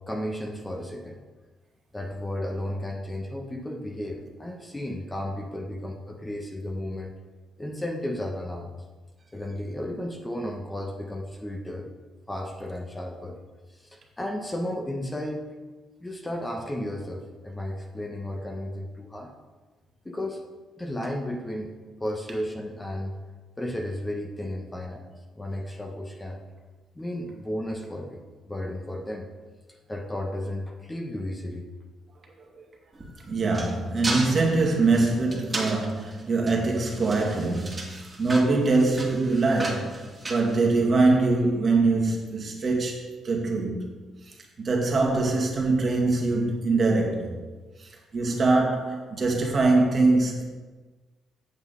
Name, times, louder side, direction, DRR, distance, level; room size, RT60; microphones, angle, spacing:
voice 1, 0.1-1.2 1.9-7.1 7.6-8.7 9.3-11.9 12.3-13.4 13.7-15.5 16.0-19.3 20.0-20.4 20.8-21.7 22.0-23.2 23.6-25.1 25.4-26.4 26.9-29.3 29.9-31.7, left 1 dB, 15° left, 1 dB, 1.1 m, -33 dB
sound 1, 32.9-41.2, right 2 dB, 25° right, 2.0 m, -36 dB
voice 2, 33.3-40.0 40.3-43.8 44.3-47.4 47.8-50.4, right 3 dB, 45° right, -1 dB, 2.1 m, -23 dB
8.5 x 7.1 x 4.1 m, 1.3 s
cardioid pair, 90°, 0 cm